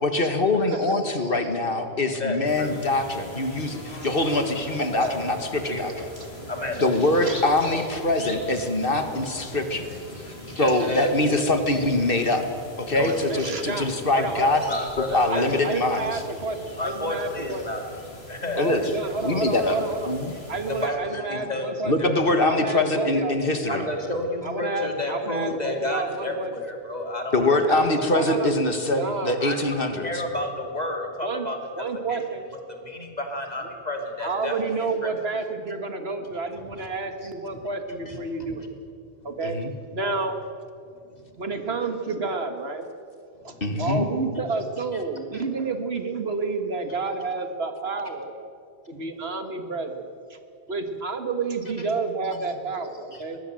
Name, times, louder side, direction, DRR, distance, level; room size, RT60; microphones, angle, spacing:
voice 1, 0.0-6.1 6.8-10.0 10.3-10.4 10.6-12.4 12.8-14.6 15.1-16.1 18.6-18.8 19.2-19.8 20.1-20.3 21.9-23.8 27.3-30.1 39.4-39.7 43.6-44.1, left 2 dB, 60° left, 7 dB, 2.0 m, -23 dB
voice 2, 0.7-1.3 5.0-5.1 6.2-6.9 7.2-7.4 10.9-11.0 13.1-14.6 15.1-17.6 18.5-20.1 20.5-21.9 22.5-23.3 23.7-23.9 24.4-26.5 27.7-28.5 29.0-29.4 31.2-31.5 31.8-32.4 33.6-33.7 34.2-38.7 39.2-39.6 39.9-40.4 41.4-42.9 43.4-48.3 48.9-50.0 50.3-50.4 50.7-53.4, right 3 dB, 75° right, 6 dB, 2.0 m, -30 dB
voice 3, 2.2-2.8 3.6-3.8 4.9-5.1 5.7-5.9 6.3-7.0 7.7-7.8 9.0-9.1 9.4-11.1 11.8-11.9 12.8-13.2 14.7-15.5 16.7-17.8 18.3-18.9 20.7-22.1 23.7-27.8 28.3-28.4 29.4-29.6 30.0-32.2 32.7-35.1 37.2-37.3 38.1-38.2 41.0-41.2 45.3-45.4 51.8-51.9 53.1-53.2, left 1 dB, 40° left, 3 dB, 3.0 m, -31 dB
sound 1, 2.4-20.9, left 1 dB, 75° left, 4.2 m, -42 dB
23.0 x 18.5 x 7.8 m, 2.4 s
omnidirectional pair, 1.1 m